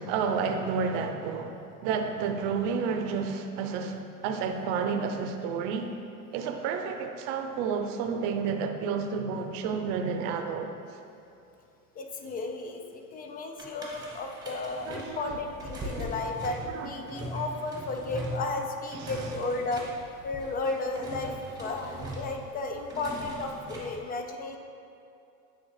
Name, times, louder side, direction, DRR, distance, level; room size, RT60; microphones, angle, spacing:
voice 1, 0.0-5.9 6.3-10.7 14.9-15.4 16.7-16.9, right 5 dB, 60° right, 5 dB, 0.7 m, -30 dB
voice 2, 12.0-19.8 20.2-24.6, left 2 dB, 25° left, 3 dB, 0.3 m, -34 dB
sound 1, 13.6-24.0, equal, 10° right, 1.1 m, -40 dB
8.8 x 3.5 x 3.2 m, 2.7 s
supercardioid pair, 115°, 42 cm